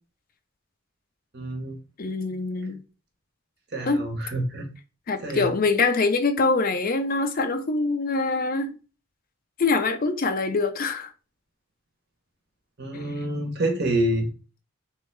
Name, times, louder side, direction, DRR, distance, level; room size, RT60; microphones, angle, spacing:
voice 1, 1.3-1.8 3.7-4.6 5.2-5.5 12.8-14.3, right 1 dB, 50° right, 1.3 m, -27 dB
voice 2, 2.0-2.8 3.8-4.0 5.1-8.7 9.6-11.1, left 3 dB, 40° left, 0.5 m, -24 dB
3.6 x 3.5 x 3.2 m
head